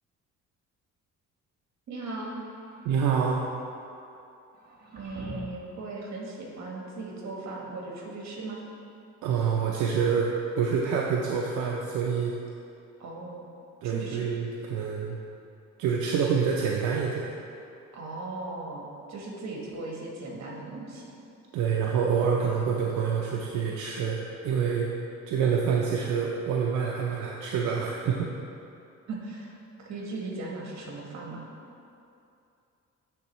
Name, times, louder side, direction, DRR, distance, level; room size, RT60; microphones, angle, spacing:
voice 1, 1.9-2.4 4.9-8.6 13.0-13.4 13.8-14.3 17.9-21.1 29.1-31.5, right 2 dB, 60° right, -1 dB, 1.2 m, -38 dB
sound 1, 2.3-3.1 4.5-5.8, right 1 dB, 35° right, 0.9 m, -45 dB
voice 2, 2.8-3.5 9.2-10.3 10.6-12.3 13.8-15.2 15.8-17.3 21.5-24.9 25.3-28.3, right 6 dB, 85° right, -2 dB, 0.5 m, -27 dB
9.2 x 3.5 x 3.0 m, 2.6 s
cardioid pair, 90°, 30 cm